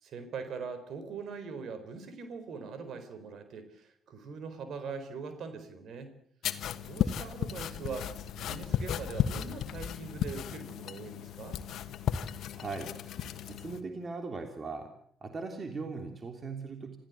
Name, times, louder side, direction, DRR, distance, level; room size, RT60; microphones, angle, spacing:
voice 1, 0.0-6.1 6.9-8.1 8.4-11.6, right 5 dB, 65° right, 10 dB, 4.2 m, -42 dB
sound 1, 6.4-13.8, left 9 dB, 65° left, 1.4 m, -34 dB
voice 2, 12.5-12.9 13.5-14.9 15.2-17.0, right 4 dB, 40° right, 5 dB, 3.2 m, -39 dB
27.5 x 15.5 x 8.2 m, 0.65 s
hypercardioid pair, 45°, 0 cm